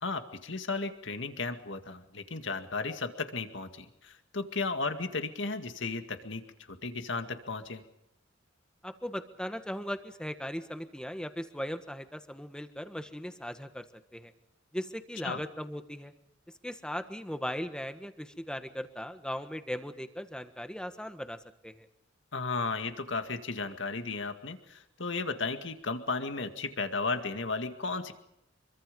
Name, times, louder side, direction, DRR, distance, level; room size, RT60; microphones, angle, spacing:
voice 1, 0.0-6.4 6.7-7.8 15.2-15.4 22.3-28.1, left 3 dB, 70° left, 7 dB, 2.1 m, -34 dB
voice 2, 8.8-13.9 14.1-14.3 14.7-16.1 16.6-21.9, equal, 5° left, 9 dB, 1.4 m, -38 dB
25.5 x 23.5 x 5.4 m, 0.81 s
head